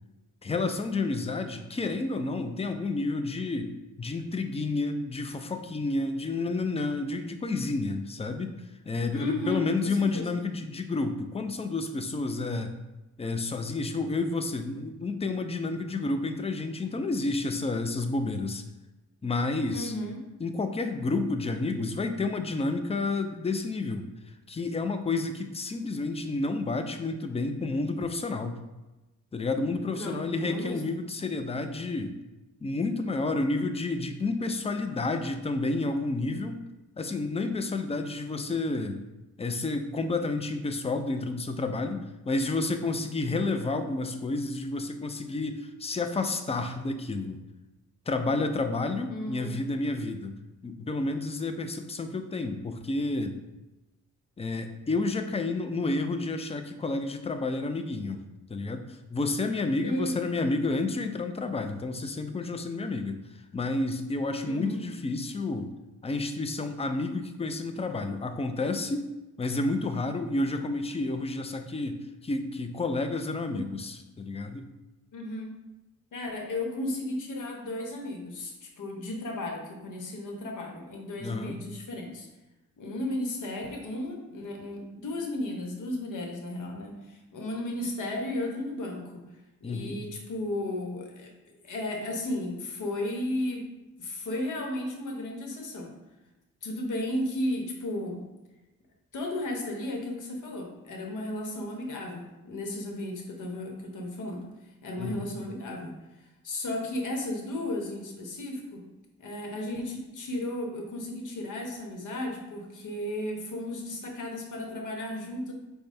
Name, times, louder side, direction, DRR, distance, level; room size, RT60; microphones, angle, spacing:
voice 1, 0.4-3.7 4.0-8.5 8.8-12.7 13.2-18.6 19.2-20.0 20.4-24.1 24.5-28.6 29.3-32.1 32.6-36.6 37.0-39.0 39.4-47.4 48.1-50.3 50.6-53.4 54.4-58.2 58.5-63.2 63.5-65.7 66.0-69.1 69.4-74.7 81.2-81.6 89.6-90.0 105.0-105.2, left 3 dB, 20° left, 7 dB, 0.5 m, -30 dB
voice 2, 9.1-10.4 19.7-20.2 29.9-30.8 49.1-49.6 59.8-60.2 64.4-64.8 75.1-75.5 76.1-82.3 82.8-89.2 89.6-91.3 91.6-95.9 96.6-98.2 99.1-104.4 104.8-105.9 106.4-108.8 109.2-115.5, left 1 dB, 60° left, 2 dB, 1.1 m, -34 dB
4.5 x 2.3 x 4.2 m, 1.1 s
supercardioid pair, 55°, 35 cm